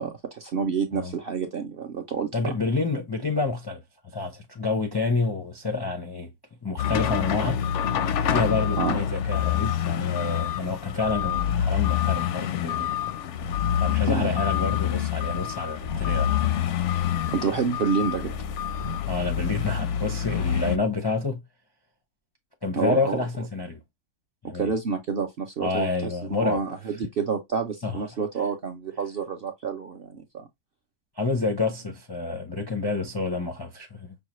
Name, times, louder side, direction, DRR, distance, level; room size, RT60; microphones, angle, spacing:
voice 1, 0.0-2.5 8.8-9.0 14.1-14.3 17.3-18.3 22.7-23.2 24.5-25.9 26.3-30.5, right 5 dB, 55° right, 0.6 m, -28 dB
voice 2, 2.3-3.8 4.1-6.3 6.6-7.6 8.2-12.9 13.8-16.5 19.1-21.4 22.6-23.8 24.4-24.7 25.6-26.6 27.8-28.0 31.2-34.2, left 3 dB, 40° left, 0.3 m, -28 dB
sound 1, 6.8-20.8, left 9 dB, 70° left, 0.7 m, -26 dB
5.4 x 2.2 x 3.0 m
omnidirectional pair, 1.6 m